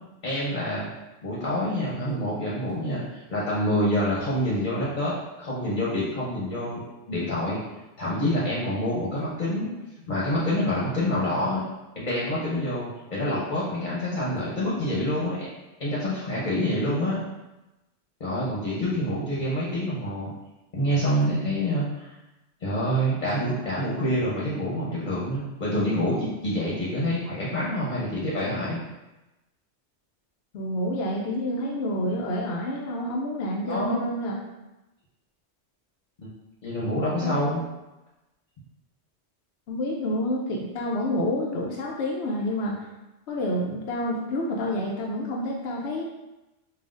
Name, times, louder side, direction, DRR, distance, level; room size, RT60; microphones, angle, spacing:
voice 1, 0.2-0.9 1.2-6.8 7.1-7.6 8.0-9.7 10.1-11.6 12.0-15.5 15.8-17.2 18.2-20.3 20.7-22.1 22.6-28.8 33.7-34.0 36.2-36.3 36.6-37.6, equal, 40° left, -6 dB, 0.9 m, -27 dB
voice 2, 30.5-34.4 37.2-37.4 39.7-42.9 43.3-46.0, left 1 dB, 70° left, -2 dB, 0.8 m, -28 dB
5.7 x 2.4 x 2.5 m, 1.0 s
omnidirectional pair, 1.2 m